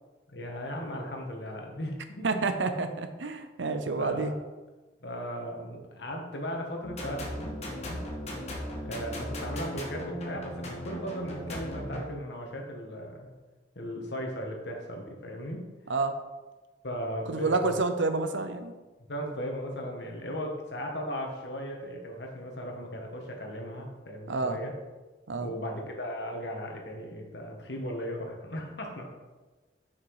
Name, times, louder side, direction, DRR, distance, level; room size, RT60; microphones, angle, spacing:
voice 1, 0.3-2.4 4.0-4.3 5.0-8.1 8.8-13.3 13.7-15.7 16.8-17.8 19.1-24.7 25.4-29.0, equal, 65° left, 1 dB, 1.5 m, -37 dB
voice 2, 2.2-4.3 15.9-16.2 17.3-18.7 24.3-24.6 25.3-25.5, right 3 dB, 85° right, 8 dB, 0.7 m, -29 dB
sound 1, 6.8-12.0, equal, 35° left, 1.6 m, -37 dB
6.5 x 6.0 x 4.8 m, 1.2 s
head